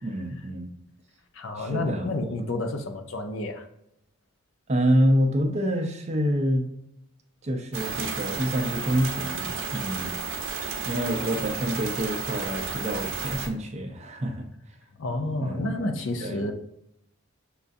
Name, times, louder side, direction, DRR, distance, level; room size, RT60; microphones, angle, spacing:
voice 1, 0.0-0.7 1.6-2.1 4.7-6.7 7.4-10.5 10.8-14.5 15.4-15.7 16.2-16.4, equal, 30° right, 4 dB, 0.5 m, -27 dB
voice 2, 1.3-3.7 15.0-16.5, left 2 dB, 60° left, 6 dB, 0.5 m, -30 dB
sound 1, 7.7-13.5, right 5 dB, 60° right, 0.7 m, -32 dB
6.6 x 2.4 x 2.5 m, 0.79 s
head